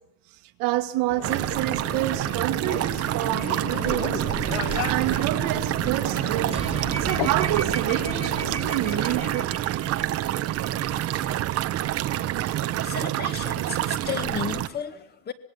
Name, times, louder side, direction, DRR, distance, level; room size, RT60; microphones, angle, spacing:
voice 1, 0.6-6.6 7.0-9.5 12.0-12.1 12.7-12.9, right 15 dB, 55° right, 1.8 m, -28 dB
sound 1, 1.1-9.5, left 17 dB, 75° left, 1.0 m, -36 dB
sound 2, 1.2-14.7, right 13 dB, 35° right, 1.2 m, -27 dB
sound 3, 6.5-12.1, right 5 dB, 15° right, 1.9 m, -38 dB
voice 2, 12.8-15.3, left 7 dB, 25° left, 1.9 m, -33 dB
26.0 x 21.0 x 7.9 m
cardioid pair, 170°, 40 cm